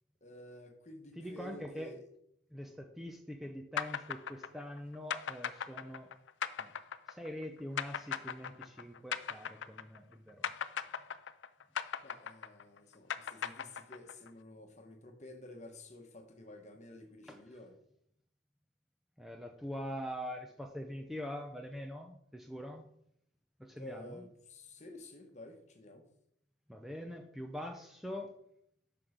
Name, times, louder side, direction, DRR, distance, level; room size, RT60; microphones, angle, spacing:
voice 1, 0.2-2.0 12.0-17.7 23.8-26.0, left 1 dB, 40° left, 4 dB, 1.2 m, -51 dB
voice 2, 1.2-1.9 2.5-6.1 6.6-6.7 7.1-10.5 17.2-17.4 19.2-22.9 23.6-24.2 26.7-28.3, equal, ahead, 3 dB, 0.6 m, -43 dB
sound 1, 3.8-10.1 10.4-14.3, left 8 dB, 80° left, 0.4 m, -38 dB
7.6 x 6.1 x 5.1 m, 0.74 s
head